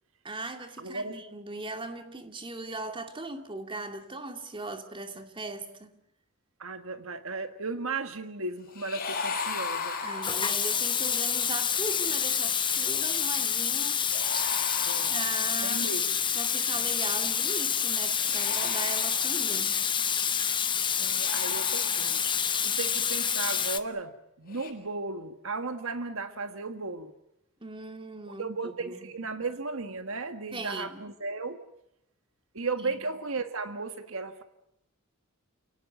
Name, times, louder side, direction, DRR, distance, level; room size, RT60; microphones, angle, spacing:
voice 1, 0.2-5.9 10.0-14.5 15.1-16.0 16.3-19.8 27.6-29.1 30.5-31.0 32.8-33.1, right 2 dB, 25° right, 2.5 m, -39 dB
voice 2, 0.8-1.2 6.6-10.0 14.8-15.1 15.6-16.0 21.0-27.1 28.2-31.6 32.5-34.4, right 3 dB, 65° right, 1.6 m, -35 dB
sound 1, 8.7-10.9 14.1-15.7 18.1-19.7 21.0-22.4 24.4-24.7, left 5 dB, 40° left, 6.7 m, -36 dB
Water tap faucet / Sink (filling or washing), 10.2-23.8, left 7 dB, 20° left, 1.1 m, -28 dB
29.5 x 18.0 x 9.4 m
head